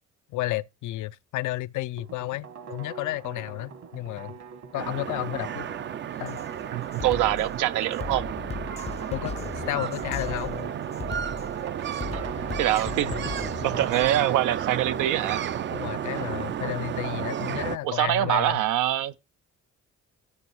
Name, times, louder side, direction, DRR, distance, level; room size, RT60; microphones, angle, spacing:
voice 1, 0.3-4.3 4.7-5.7 6.2-6.4 9.1-10.6 12.9-13.3 15.7-18.6, left 17 dB, 80° left, 0.5 m, -32 dB
sound 1, 2.0-16.7, right 6 dB, 60° right, 1.7 m, -42 dB
sound 2, 4.8-17.8, right 9 dB, 40° right, 0.4 m, -33 dB
Drum kit, 6.3-6.4 6.9-14.1, left 5 dB, 20° left, 0.4 m, -37 dB
voice 2, 6.7-8.3 12.1-12.2 12.6-13.1 13.6-15.4 17.8-19.2, right 13 dB, 85° right, 0.7 m, -24 dB
8.3 x 7.0 x 4.6 m
cardioid pair, 90°, 30 cm